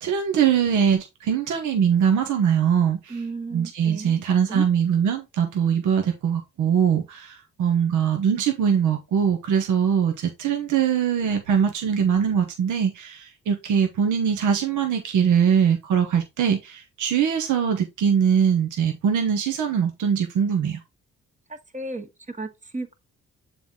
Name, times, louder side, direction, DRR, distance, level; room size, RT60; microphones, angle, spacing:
voice 1, 0.0-3.2 3.5-20.8, right 7 dB, 80° right, 1.1 m, -22 dB
voice 2, 3.1-4.1 4.5-4.6 21.5-22.9, right 2 dB, 25° right, 1.5 m, -34 dB
7.1 x 4.1 x 3.7 m
supercardioid pair, 55°, 30 cm